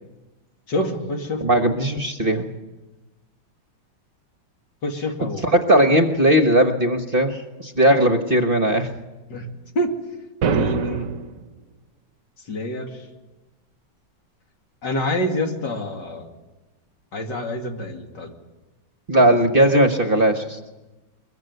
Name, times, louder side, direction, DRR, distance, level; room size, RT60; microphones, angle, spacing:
voice 1, 0.7-1.4 4.8-5.5 9.3-9.5 9.7-9.9 10.5-11.1 12.5-12.9 14.8-16.3 17.1-18.3, left 1 dB, 65° left, 3 dB, 3.0 m, -26 dB
voice 2, 1.4-2.5 5.2-8.9 19.1-20.6, right 1 dB, 35° right, 6 dB, 1.2 m, -18 dB
sound 1, 10.4-11.4, right 6 dB, 55° right, 1.2 m, -23 dB
22.5 x 22.0 x 8.0 m, 1.1 s
omnidirectional pair, 2.0 m